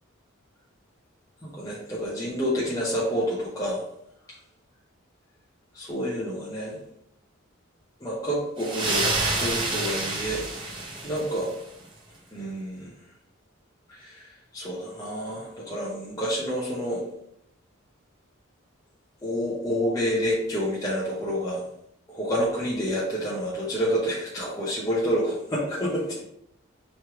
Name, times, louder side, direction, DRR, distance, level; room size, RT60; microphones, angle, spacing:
voice 1, 1.4-3.8 5.7-6.8 8.0-10.4 11.0-11.5 12.3-12.9 13.9-14.3 14.5-17.0 19.2-21.6 22.1-26.2, equal, 15° left, -6 dB, 0.7 m, -28 dB
sound 1, 8.6-11.6, right 2 dB, 25° right, 0.6 m, -28 dB
3.1 x 3.1 x 4.7 m, 0.73 s
head